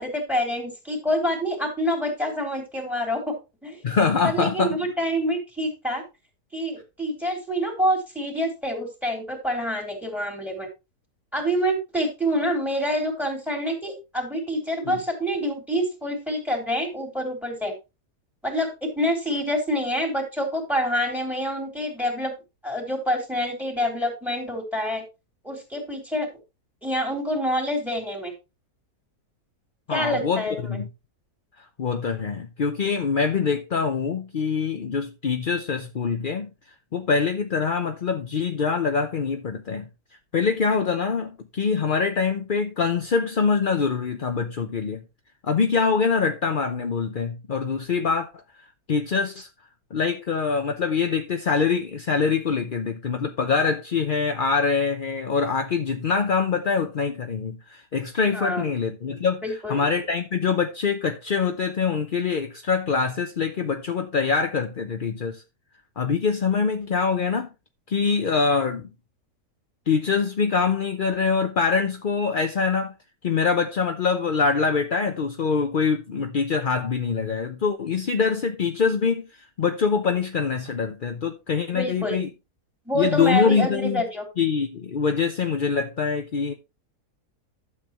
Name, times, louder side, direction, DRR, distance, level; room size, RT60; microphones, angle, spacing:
voice 1, 0.0-3.3 3.6-3.8 4.2-6.0 6.5-10.7 11.3-17.7 18.4-22.3 22.6-25.0 25.4-26.3 26.8-28.3 29.9-30.8 58.3-58.6 59.4-59.8 81.7-82.2 82.8-84.2, equal, ahead, 3.4 m, -27 dB
voice 2, 3.8-4.8 14.9-15.0 29.9-30.9 31.8-36.5 36.9-39.9 40.3-45.0 45.4-48.4 48.9-49.5 49.9-59.4 59.7-65.4 66.0-67.5 67.9-68.9 69.9-72.9 73.2-82.3 82.9-84.0 84.4-86.5, left 5 dB, 45° left, 0.6 m, -24 dB
12.0 x 7.8 x 3.0 m
omnidirectional pair, 1.8 m